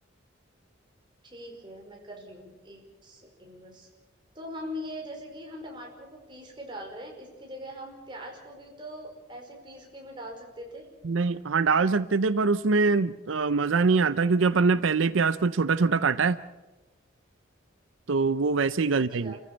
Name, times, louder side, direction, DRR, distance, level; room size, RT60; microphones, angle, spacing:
voice 1, 1.2-3.9 4.4-10.9 19.2-19.4, equal, 25° right, 0 dB, 5.2 m, -42 dB
voice 2, 11.0-16.4 18.1-19.3, right 4 dB, 85° right, 14 dB, 0.6 m, -23 dB
28.5 x 15.0 x 6.8 m, 1.2 s
head